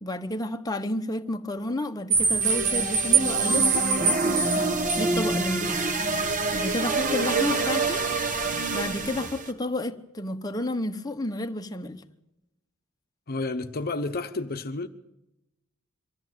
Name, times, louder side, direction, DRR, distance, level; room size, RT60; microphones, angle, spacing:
voice 1, 0.0-5.9 6.5-8.0 8.4-12.0, left 1 dB, 20° left, 1.0 m, -31 dB
sound 1, 2.1-9.3, right 5 dB, 65° right, 2.2 m, -28 dB
sound 2, 2.4-9.5, right 3 dB, 40° right, 1.7 m, -27 dB
voice 2, 13.3-14.9, left 3 dB, 45° left, 0.9 m, -30 dB
24.0 x 13.5 x 9.1 m
head